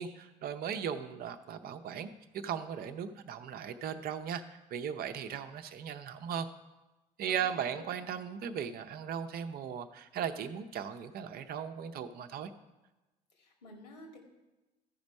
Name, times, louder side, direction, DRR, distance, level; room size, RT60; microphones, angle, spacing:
voice 1, 0.0-6.5 7.2-12.5, right 8 dB, 45° right, 8 dB, 0.7 m, -37 dB
voice 2, 7.3-7.9 13.3-14.2, left 2 dB, 75° left, 2 dB, 2.1 m, -51 dB
13.5 x 5.2 x 5.2 m, 1.1 s
figure-of-eight pair, 55°, 21 cm